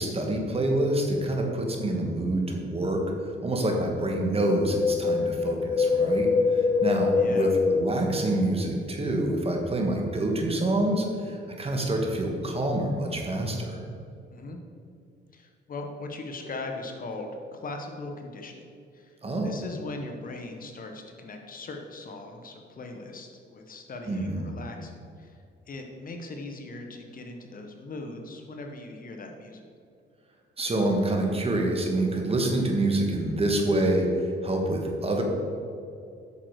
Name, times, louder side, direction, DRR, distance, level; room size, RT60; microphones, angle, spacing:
voice 1, 0.0-3.0 3.4-13.8 19.2-19.6 24.1-24.5 30.6-35.2, right 1 dB, 30° right, 2 dB, 1.6 m, -27 dB
Wind, 4.4-8.8 9.0-9.1, left 4 dB, 20° left, 0.3 m, -25 dB
voice 2, 7.2-7.5 14.3-14.6 15.3-18.7 18.9-19.2 19.4-29.6, left 2 dB, 45° left, 3 dB, 1.1 m, -39 dB
8.5 x 6.4 x 4.8 m, 2.4 s
cardioid pair, 90°, 20 cm